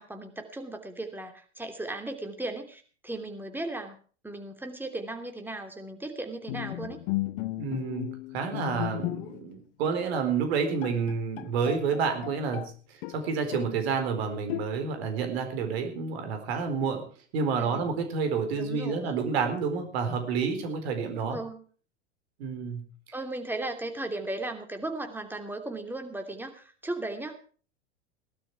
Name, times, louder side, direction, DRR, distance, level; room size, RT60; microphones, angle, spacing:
voice 1, 0.0-4.0 4.2-7.0 17.6-18.0 18.5-19.2 21.3-21.6 23.1-27.4, right 2 dB, 5° right, 5 dB, 2.9 m, -36 dB
Bowed string instrument, 6.5-9.5 9.8-10.1 10.5-10.6 10.8-12.7 13.0-13.8 14.5-15.1, left 18 dB, 50° left, 0.9 m, -35 dB
voice 2, 7.6-17.0 17.3-21.4 22.4-22.8, right 5 dB, 60° right, 7 dB, 4.3 m, -29 dB
17.5 x 12.5 x 4.8 m, 0.41 s
figure-of-eight pair, 90°, 35 cm